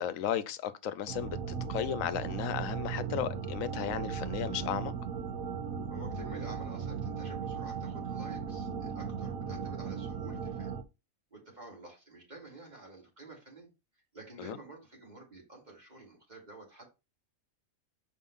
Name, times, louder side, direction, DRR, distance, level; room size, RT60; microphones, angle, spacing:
voice 1, 0.0-1.4 1.7-4.9 14.4-14.6, left 10 dB, 80° left, 1.1 m, -34 dB
sound 1, 1.1-10.8, right 6 dB, 85° right, 1.2 m, -37 dB
voice 2, 5.9-10.7 11.3-13.7 14.1-16.8, right 2 dB, 30° right, 3.2 m, -50 dB
5.6 x 4.6 x 5.5 m
omnidirectional pair, 1.4 m